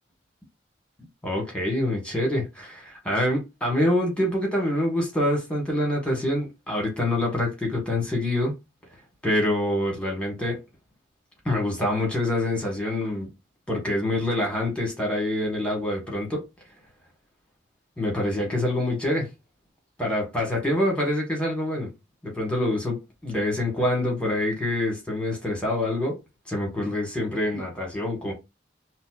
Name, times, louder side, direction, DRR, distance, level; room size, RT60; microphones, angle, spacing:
voice 1, 1.2-8.5 9.2-10.6 11.4-13.3 13.7-16.4 18.0-19.3 20.0-21.9 22.2-26.1 26.5-28.3, left 1 dB, 5° left, 1.4 m, -26 dB
5.3 x 2.1 x 2.4 m
head